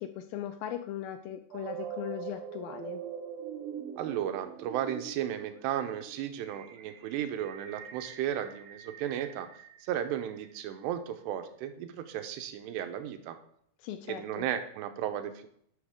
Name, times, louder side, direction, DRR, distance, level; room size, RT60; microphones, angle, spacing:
voice 1, 0.0-3.0 13.8-14.5, left 11 dB, 85° left, 8 dB, 2.1 m, -39 dB
sound 1, 1.5-10.5, right 8 dB, 70° right, 2.5 m, -43 dB
voice 2, 4.0-9.5 9.9-13.4 14.1-15.5, right 10 dB, 90° right, 8 dB, 2.9 m, -34 dB
11.5 x 6.2 x 3.6 m, 0.67 s
omnidirectional pair, 4.8 m